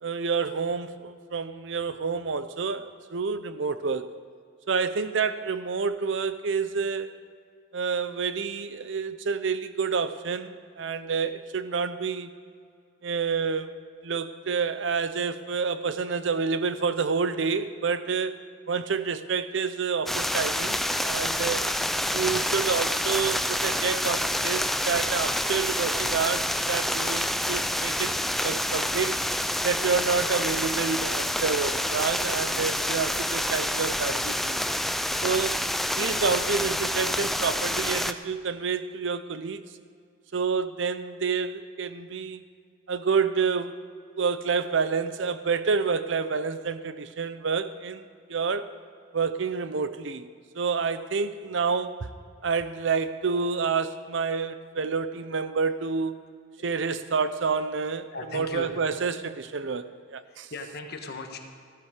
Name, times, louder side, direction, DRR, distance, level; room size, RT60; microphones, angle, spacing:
voice 1, 0.0-4.1 4.7-7.1 7.7-12.3 13.0-18.4 18.7-21.6 22.1-28.1 28.4-29.2 29.6-34.6 35.2-35.6 36.0-39.6 40.3-42.4 42.9-43.8 44.2-48.0 48.3-48.7 49.1-50.3 50.5-52.1 52.4-56.2 56.6-58.1 58.3-60.5, right 5 dB, 65° right, 13 dB, 0.6 m, -28 dB
sound 1, 20.1-38.1, left 1 dB, ahead, 0.3 m, -28 dB
voice 2, 58.1-58.7 60.2-61.4, left 2 dB, 55° left, 4 dB, 1.4 m, -38 dB
15.0 x 12.5 x 5.0 m, 2.2 s
head